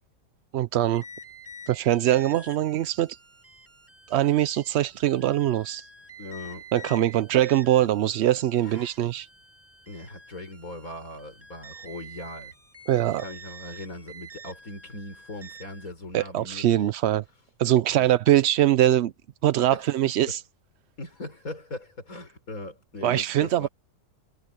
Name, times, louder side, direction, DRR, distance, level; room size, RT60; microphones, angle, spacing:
voice 1, 0.5-1.0 1.7-3.2 4.1-5.9 6.7-9.3 12.9-13.2 16.1-17.2 17.6-19.1 19.4-20.4 23.0-23.7, right 13 dB, 65° right, 0.7 m, -22 dB
sound 1, 0.9-15.9, right 2 dB, 10° right, 1.9 m, -48 dB
voice 2, 6.2-6.7 8.6-9.0 9.9-12.5 13.2-16.9 18.0-18.2 19.7-20.0 21.0-23.7, left 2 dB, 90° left, 5.9 m, -40 dB
omnidirectional pair, 1.4 m